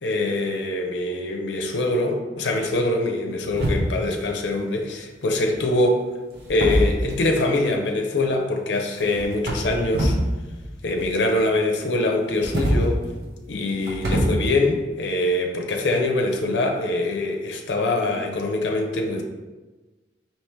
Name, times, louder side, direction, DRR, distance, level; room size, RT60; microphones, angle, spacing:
voice 1, 0.0-6.1 6.5-10.2 10.8-13.0 13.5-19.2, left 2 dB, 80° left, 2 dB, 0.5 m, -24 dB
sound 1, 3.5-4.2 5.2-5.6 6.3-7.4 9.0-10.3 10.5-11.4 12.2-14.2, right 1 dB, 65° right, 0.8 m, -25 dB
4.4 x 2.9 x 3.4 m, 1.2 s
head